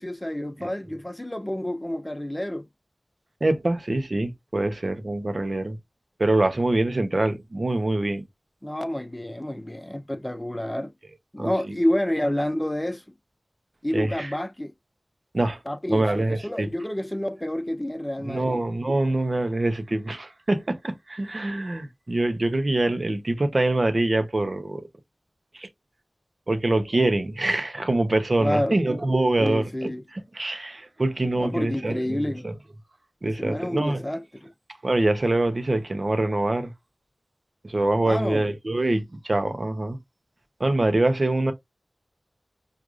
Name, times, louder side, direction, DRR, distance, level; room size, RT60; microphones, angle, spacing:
voice 1, 0.0-2.6 8.6-10.9 11.3-13.0 13.8-14.7 15.7-18.6 26.9-27.1 28.4-28.8 29.4-30.0 31.4-32.5 33.2-34.5 38.1-38.5, left 1 dB, 20° left, 0.7 m, -29 dB
voice 2, 3.4-5.8 6.2-8.2 11.4-11.5 13.9-14.3 15.3-15.6 15.9-16.7 18.2-24.8 25.5-25.7 26.5-29.9 30.3-32.5 33.2-34.1 34.8-36.7 37.6-40.0 40.6-41.5, right 2 dB, 55° right, 0.8 m, -24 dB
4.6 x 2.5 x 2.5 m
wide cardioid pair, 40°, 0 cm